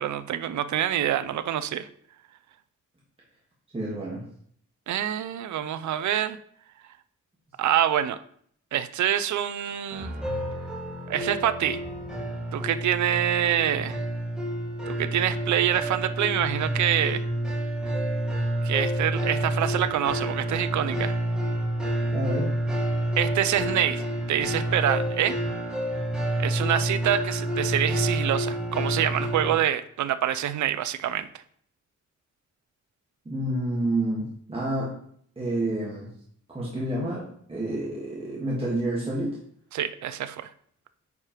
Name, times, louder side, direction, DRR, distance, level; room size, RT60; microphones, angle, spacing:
voice 1, 0.0-1.9 4.9-6.4 7.6-8.2 8.7-10.1 11.1-11.8 12.5-14.0 14.9-17.2 18.6-21.2 23.2-25.3 26.4-31.3 39.7-40.5, right 11 dB, 70° right, 13 dB, 0.5 m, -26 dB
voice 2, 3.7-4.2 22.1-22.5 33.2-34.9 35.4-36.1 36.5-39.3, right 1 dB, 20° right, -6 dB, 1.5 m, -29 dB
sound 1, 9.9-29.5, right 1 dB, 5° right, 1.4 m, -29 dB
9.4 x 4.9 x 3.0 m, 0.63 s
wide cardioid pair, 150°, 30 cm